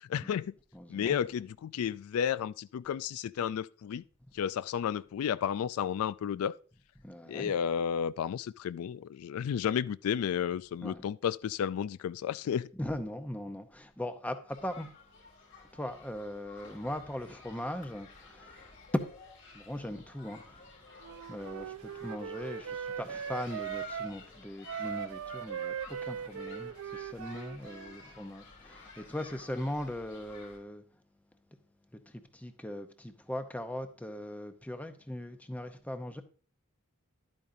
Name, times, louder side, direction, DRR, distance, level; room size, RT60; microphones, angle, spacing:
voice 1, 0.1-0.5 0.9-4.0 4.3-6.5 7.3-12.7, left 8 dB, 85° left, 0.3 m, -32 dB
voice 2, 0.7-1.2 7.0-7.5 10.8-11.0 12.7-14.9 15.7-19.0 19.5-20.7 21.3-30.8 31.9-36.2, left 1 dB, 5° left, 0.7 m, -39 dB
sound 1, 14.5-30.6, left 4 dB, 60° left, 3.1 m, -52 dB
Wind instrument woodwind instrument, 21.0-24.2 24.6-28.0, right 8 dB, 80° right, 0.4 m, -39 dB
11.5 x 8.8 x 2.6 m
head